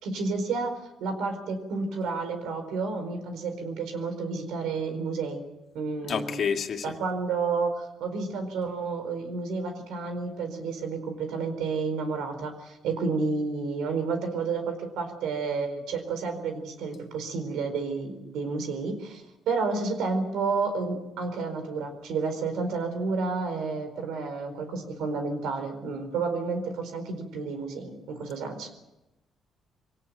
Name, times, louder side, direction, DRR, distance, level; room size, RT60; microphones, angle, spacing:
voice 1, 0.0-5.4 5.7-6.5 6.8-28.7, right 4 dB, 85° right, 7 dB, 4.4 m, -31 dB
voice 2, 6.0-6.8, left 6 dB, 60° left, 4 dB, 2.3 m, -28 dB
23.0 x 18.0 x 9.3 m, 0.98 s
cardioid pair, 90°, 0 cm